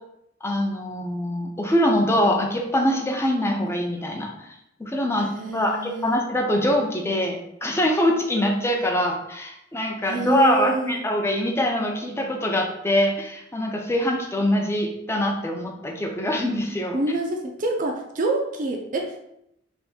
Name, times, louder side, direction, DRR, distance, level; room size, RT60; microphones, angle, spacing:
voice 1, 0.4-4.5 4.8-17.0, left 1 dB, 15° left, 2 dB, 0.5 m, -23 dB
voice 2, 5.2-6.2 10.1-11.0 16.9-19.2, right 2 dB, 45° right, 2 dB, 0.5 m, -26 dB
3.4 x 2.6 x 4.1 m, 0.78 s
head